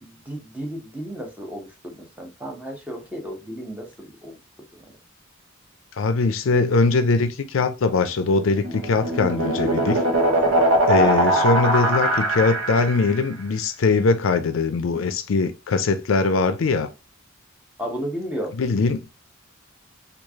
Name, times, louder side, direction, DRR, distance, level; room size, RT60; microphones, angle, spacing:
voice 1, 0.0-4.4 11.0-11.4 17.8-18.5, equal, 5° right, 0.8 m, -33 dB
voice 2, 6.0-10.0 10.9-16.9 18.6-19.0, left 3 dB, 70° left, 0.4 m, -21 dB
sound 1, 8.4-13.2, right 1 dB, 80° right, 0.8 m, -21 dB
3.2 x 2.4 x 3.5 m
head